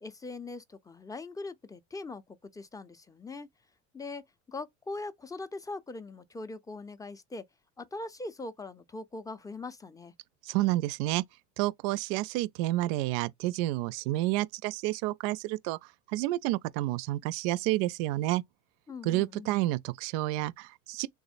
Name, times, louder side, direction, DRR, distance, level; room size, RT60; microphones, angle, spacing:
voice 1, 0.0-3.5 3.9-4.2 4.5-7.4 7.8-10.1 18.9-19.5, left 3 dB, 10° left, 0.5 m, -41 dB
voice 2, 10.4-11.2 11.6-15.8 16.1-18.4 19.0-21.1, right 17 dB, 70° right, 0.5 m, -30 dB
3.6 x 2.0 x 2.4 m
supercardioid pair, 90°, 36 cm